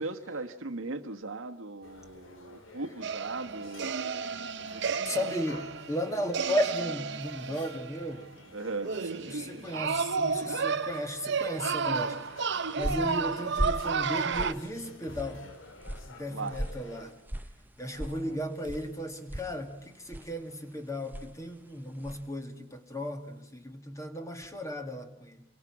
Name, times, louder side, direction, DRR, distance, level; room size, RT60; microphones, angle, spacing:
voice 1, 0.0-3.9 4.7-5.3 8.5-8.9 16.3-16.6 17.8-18.4, right 3 dB, 90° right, 6 dB, 1.4 m, -38 dB
sound 1, 1.8-17.1, left 2 dB, 75° left, 2.5 m, -52 dB
sound 2, 3.0-8.1 8.8-14.5, right 5 dB, 60° right, 0.9 m, -32 dB
voice 2, 5.0-8.3 9.1-12.5 12.8-15.4 16.1-17.2 17.8-25.4, equal, 15° left, 6 dB, 2.2 m, -35 dB
sound 3, 12.3-22.4, equal, 10° right, 0.9 m, -40 dB
27.5 x 23.0 x 6.0 m, 0.86 s
head